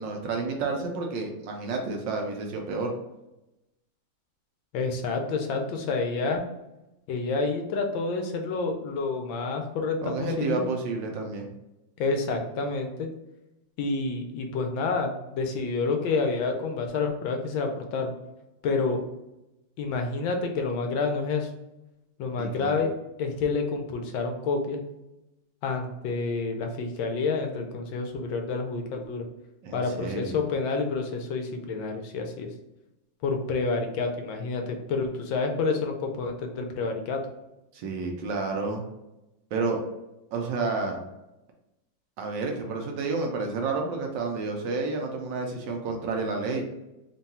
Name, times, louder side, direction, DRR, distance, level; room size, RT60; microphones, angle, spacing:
voice 1, 0.0-2.9 10.0-11.5 22.4-22.7 29.6-30.4 37.7-38.8 39.5-39.8 40.3-41.0 42.2-46.6, right 3 dB, 75° right, 2 dB, 1.3 m, -30 dB
voice 2, 4.7-6.4 7.1-10.6 12.0-13.1 13.8-18.1 18.6-19.0 19.8-21.5 22.2-22.9 23.2-24.8 25.6-29.3 29.7-32.5 33.2-37.2, left 4 dB, 80° left, 3 dB, 1.4 m, -28 dB
3.7 x 2.2 x 4.1 m, 0.95 s
omnidirectional pair, 2.2 m